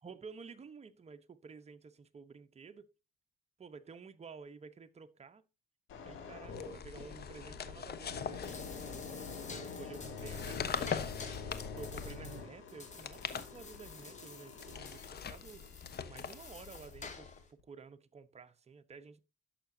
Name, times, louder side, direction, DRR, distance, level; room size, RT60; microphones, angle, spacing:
voice 1, 0.0-2.9 3.6-5.4 6.0-11.0 11.7-15.6 16.1-19.2, right 5 dB, 35° right, 1.1 m, -52 dB
sound 1, 5.9-16.8 17.4-17.6, left 5 dB, 80° left, 2.6 m, -47 dB
sound 2, 6.5-9.3 10.1-12.3 12.9-14.0 14.6-17.4, left 7 dB, 55° left, 1.1 m, -42 dB
sound 3, 8.2-17.5, left 4 dB, 35° left, 2.4 m, -51 dB
11.0 x 6.9 x 2.8 m
cardioid pair, 90°, 20 cm